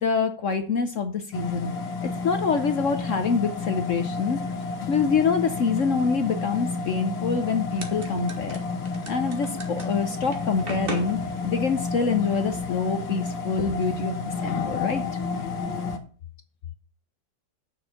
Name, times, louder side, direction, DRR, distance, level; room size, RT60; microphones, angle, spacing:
voice 1, 0.0-1.7 2.0-4.4 4.9-8.6 9.1-15.0, left 5 dB, 55° left, 8 dB, 0.9 m, -26 dB
sound 1, 1.3-16.0, left 4 dB, 75° left, 1.9 m, -31 dB
sound 2, 7.6-15.8, right 2 dB, 30° right, 1.6 m, -41 dB
7.0 x 6.2 x 7.8 m, 0.41 s
omnidirectional pair, 2.0 m